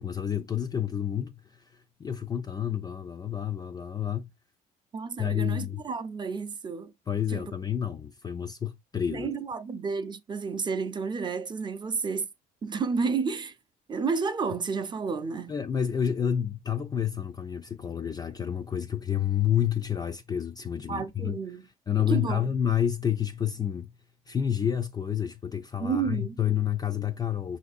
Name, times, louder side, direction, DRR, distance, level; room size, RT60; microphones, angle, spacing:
voice 1, 0.0-4.3 5.2-5.8 7.1-9.3 15.5-23.9 24.3-27.6, left 9 dB, 25° left, 0.4 m, -29 dB
voice 2, 4.9-6.9 7.3-7.4 9.1-12.3 12.6-13.5 13.9-15.5 20.9-21.6 22.1-22.5 25.8-26.4, right 5 dB, 25° right, 0.5 m, -31 dB
5.8 x 2.6 x 2.4 m
cardioid pair, 110°, 17 cm